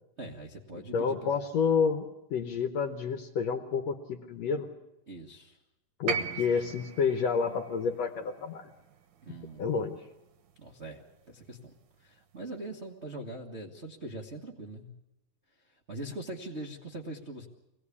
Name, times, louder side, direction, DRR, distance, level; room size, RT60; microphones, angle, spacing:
voice 1, 0.2-1.4 5.1-5.6 6.1-6.8 9.2-9.8 10.5-11.7 12.0-14.9 15.9-17.5, right 1 dB, 85° right, -2 dB, 0.6 m, -42 dB
voice 2, 0.7-4.7 6.0-8.6 9.6-10.0, left 6 dB, 70° left, 6 dB, 1.7 m, -29 dB
sound 1, 6.1-10.2 11.4-11.5, right 6 dB, 65° right, 1.9 m, -38 dB
24.0 x 17.5 x 8.5 m, 0.95 s
omnidirectional pair, 4.1 m